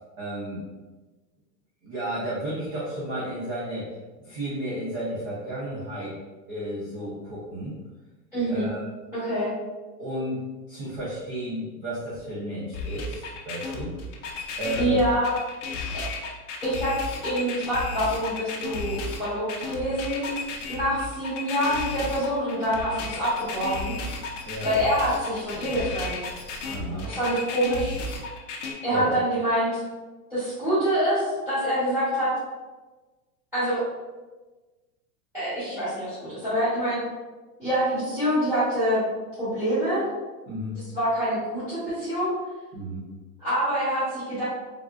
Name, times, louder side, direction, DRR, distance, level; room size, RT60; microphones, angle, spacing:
voice 1, 0.2-0.6 1.8-3.9 4.2-6.2 6.5-7.8 8.5-8.8 10.0-14.0 14.6-15.0 24.4-24.7 26.7-27.1 28.9-29.2 40.5-40.8 42.7-43.0, right 1 dB, 35° right, -8 dB, 0.6 m, -32 dB
voice 2, 8.3-8.7 9.1-9.5 14.8-15.3 16.6-17.0 17.2-20.3 20.7-24.0 24.6-26.2 27.0-28.0 28.8-29.8 30.3-32.3 33.5-33.8 35.3-37.0 37.6-39.0 39.4-40.1 40.9-42.3 43.4-44.4, equal, 5° right, -14 dB, 0.9 m, -26 dB
sound 1, 12.7-28.7, left 3 dB, 50° left, 0.5 m, -34 dB
3.4 x 2.4 x 2.3 m, 1.2 s
supercardioid pair, 160°, 49 cm